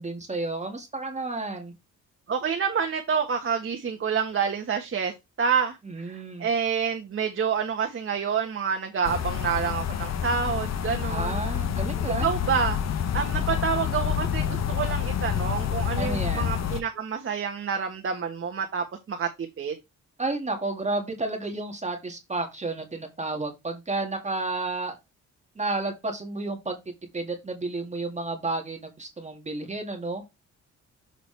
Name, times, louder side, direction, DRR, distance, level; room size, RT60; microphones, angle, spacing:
voice 1, 0.0-1.7 5.8-6.5 11.0-12.3 16.0-16.6 20.2-25.0 25.6-26.8 27.1-30.2, right 2 dB, 20° right, 2.1 m, -31 dB
voice 2, 2.3-6.1 6.4-11.4 12.2-12.8 13.1-19.3 19.6-19.8, right 6 dB, 45° right, 1.4 m, -28 dB
sound 1, 9.0-16.8, left 9 dB, 60° left, 1.0 m, -28 dB
6.9 x 4.9 x 3.3 m
cardioid pair, 115°, 30 cm